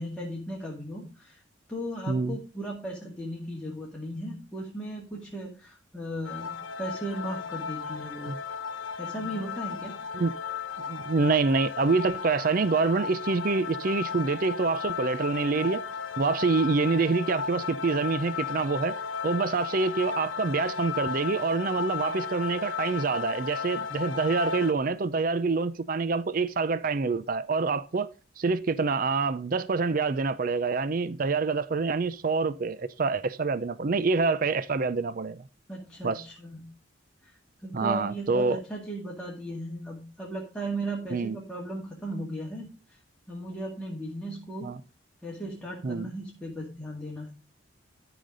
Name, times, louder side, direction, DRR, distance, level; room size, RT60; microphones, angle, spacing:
voice 1, 0.0-1.4 1.7-8.3 9.0-10.0 35.7-36.7 37.2-37.3 37.6-43.0 43.3-44.7 45.2-47.3, right 1 dB, 5° left, 2.2 m, -36 dB
voice 2, 2.1-2.4 8.3-8.4 10.1-10.3 10.9-15.8 16.2-19.0 19.2-28.1 28.4-35.4 36.0-36.2 37.7-38.6 41.1-41.4 44.6-44.8 45.8-46.1, right 4 dB, 45° right, 0.5 m, -26 dB
sound 1, 6.2-24.7, left 6 dB, 80° left, 0.9 m, -35 dB
13.0 x 5.1 x 5.2 m
head